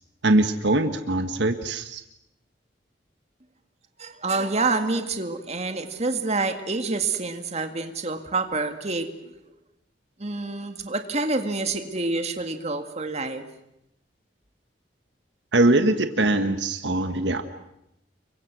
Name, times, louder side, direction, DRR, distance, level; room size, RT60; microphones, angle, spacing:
voice 1, 0.2-2.0 15.5-17.4, right 2 dB, 75° right, 8 dB, 1.4 m, -22 dB
voice 2, 4.0-9.4 10.2-13.5, right 3 dB, 40° right, 6 dB, 2.1 m, -27 dB
29.0 x 23.5 x 6.2 m, 0.82 s
head